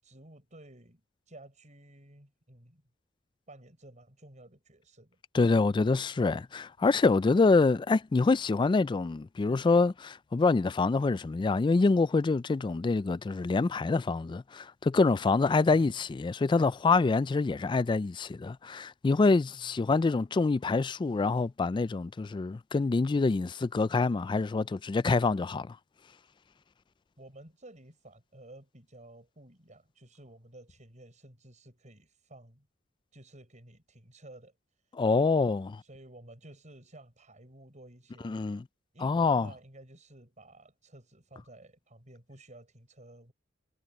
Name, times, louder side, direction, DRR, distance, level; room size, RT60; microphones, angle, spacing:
voice 1, 0.0-2.8 3.5-5.2 9.5-9.7 15.6-16.1 19.5-19.7 27.2-32.7 33.1-34.6 34.8-35.3 35.8-38.3 38.9-43.3, right 1 dB, 40° right, 7.0 m, -53 dB
voice 2, 5.3-25.8 35.0-35.8 38.2-38.6 39.0-39.5, left 3 dB, 25° left, 0.3 m, -26 dB
head